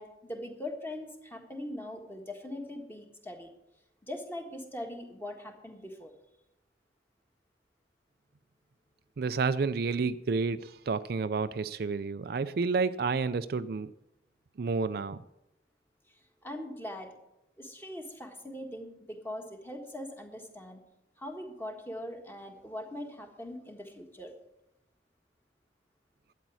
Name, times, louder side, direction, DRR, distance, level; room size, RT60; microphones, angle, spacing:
voice 1, 0.0-3.5 4.0-6.1 16.1-16.2 16.4-17.1 17.6-20.8 21.2-24.3, left 1 dB, 10° left, 1.5 m, -41 dB
voice 2, 9.2-13.9 14.6-15.2, right 4 dB, 55° right, 0.4 m, -30 dB
12.0 x 9.2 x 6.2 m
head